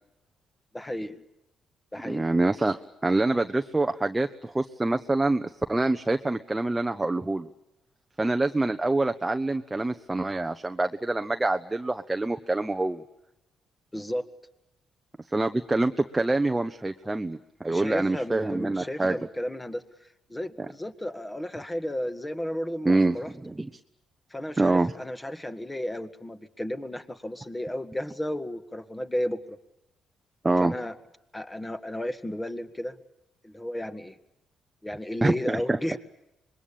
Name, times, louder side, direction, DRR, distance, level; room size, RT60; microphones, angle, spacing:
voice 1, 0.7-1.2 1.9-2.3 13.9-14.2 17.7-19.8 20.3-23.3 24.3-29.6 30.6-30.9 31.3-33.0 33.4-34.2 34.8-36.0, left 1 dB, 10° left, 10 dB, 1.8 m, -33 dB
voice 2, 2.0-7.5 8.2-13.0 15.3-19.2 22.8-23.7 24.6-24.9 30.4-30.7 35.2-35.8, right 2 dB, 15° right, 7 dB, 1.0 m, -26 dB
26.0 x 22.0 x 8.7 m, 0.87 s
cardioid pair, 90°, 0 cm